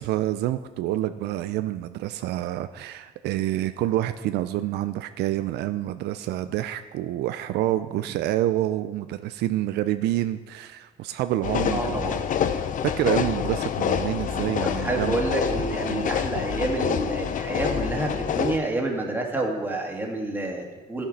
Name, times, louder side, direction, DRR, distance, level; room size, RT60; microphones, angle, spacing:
voice 1, 0.0-15.2 15.9-16.1, right 14 dB, 75° right, 11 dB, 0.4 m, -28 dB
sound 1, 11.4-18.6, left 8 dB, 50° left, 0.6 m, -27 dB
voice 2, 11.7-12.2 14.7-21.0, right 2 dB, 10° right, 0 dB, 2.0 m, -28 dB
11.0 x 7.2 x 5.2 m, 1.3 s
cardioid pair, 110°, 17 cm